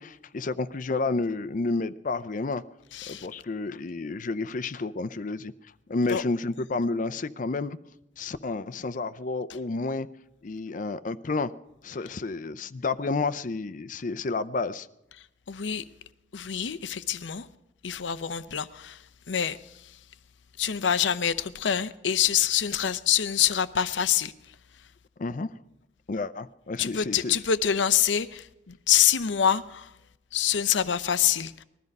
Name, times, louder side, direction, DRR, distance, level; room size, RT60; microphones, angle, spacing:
voice 1, 0.0-2.6 3.1-5.5 5.9-7.8 8.2-10.1 10.4-11.5 11.8-14.9 25.2-25.6 26.1-27.3, left 3 dB, 45° left, 0.5 m, -30 dB
voice 2, 2.9-3.3 6.1-6.2 15.5-15.8 16.3-17.5 17.8-19.0 19.3-19.6 20.6-24.3 26.8-29.9 30.3-31.6, left 9 dB, 85° left, 0.7 m, -25 dB
20.5 x 13.5 x 5.3 m
head